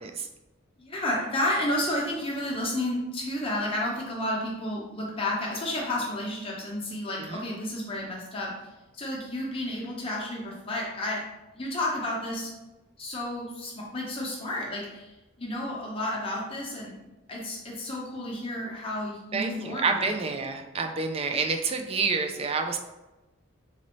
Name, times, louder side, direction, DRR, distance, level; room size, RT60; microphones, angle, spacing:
voice 1, 0.8-8.5 8.9-11.2 11.5-12.5 13.0-15.1 15.4-16.9 17.3-20.2, left 1 dB, 30° left, -3 dB, 0.9 m, -31 dB
voice 2, 19.8-22.8, right 4 dB, 30° right, 4 dB, 0.3 m, -28 dB
4.1 x 2.6 x 3.1 m, 1.0 s
head